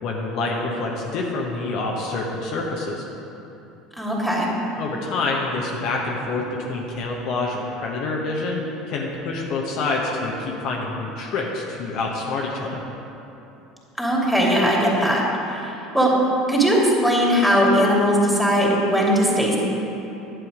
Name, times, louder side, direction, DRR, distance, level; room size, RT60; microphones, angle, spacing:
voice 1, 0.0-3.0 4.8-12.8, left 3 dB, 55° left, -2 dB, 1.2 m, -27 dB
voice 2, 4.0-4.5 14.0-15.2 15.5-16.1 16.5-19.6, equal, ahead, -3 dB, 2.7 m, -19 dB
11.0 x 7.7 x 5.0 m, 2.9 s
figure-of-eight pair, 70°, 0 cm